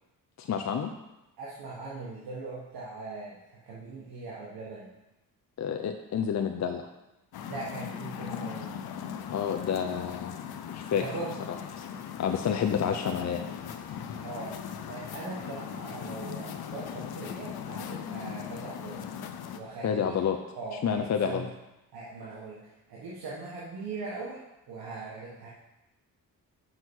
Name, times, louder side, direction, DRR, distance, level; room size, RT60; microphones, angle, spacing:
voice 1, 0.4-0.9 5.6-6.9 9.3-11.0 11.8-11.9 12.2-13.5 19.8-20.4 20.8-21.5, left 7 dB, 50° left, 5 dB, 0.6 m, -29 dB
voice 2, 1.4-4.9 7.5-8.7 10.9-11.4 14.2-14.6 14.9-19.1 19.5-20.3 20.5-21.5 21.9-25.5, right 3 dB, 90° right, -6 dB, 1.6 m, -40 dB
sound 1, 7.3-19.6, left 8 dB, 90° left, 0.7 m, -39 dB
6.3 x 5.5 x 6.3 m, 0.95 s
cardioid pair, 90°, 36 cm